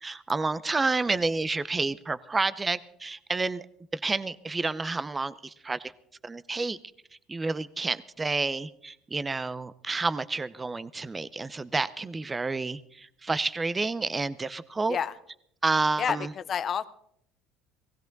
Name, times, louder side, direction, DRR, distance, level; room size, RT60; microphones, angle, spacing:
voice 1, 0.0-3.6 3.9-5.9 6.2-6.8 7.3-15.0 15.6-16.3, right 3 dB, 20° right, 15 dB, 0.8 m, -29 dB
voice 2, 16.0-16.8, left 8 dB, 45° left, 13 dB, 1.1 m, -29 dB
19.0 x 16.0 x 4.0 m, 0.70 s
hypercardioid pair, 70°, 0 cm